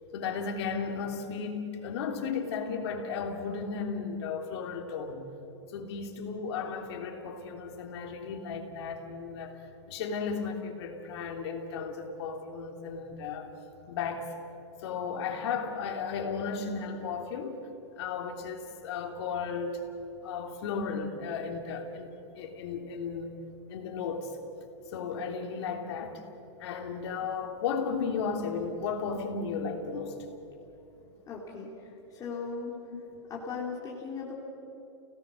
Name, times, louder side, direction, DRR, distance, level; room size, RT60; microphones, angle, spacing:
voice 1, 0.1-5.3 5.7-9.6 9.9-13.5 13.9-14.3 14.8-17.6 18.0-19.8 20.2-23.4 23.7-24.4 24.9-26.2 26.6-30.2 32.9-33.0, left 5 dB, 65° left, 3 dB, 3.0 m, -34 dB
voice 2, 31.3-31.7 32.1-32.8 33.3-34.3, left 5 dB, 25° left, -3 dB, 3.3 m, -37 dB
29.5 x 18.0 x 6.4 m, 3.0 s
hypercardioid pair, 135°, 15 cm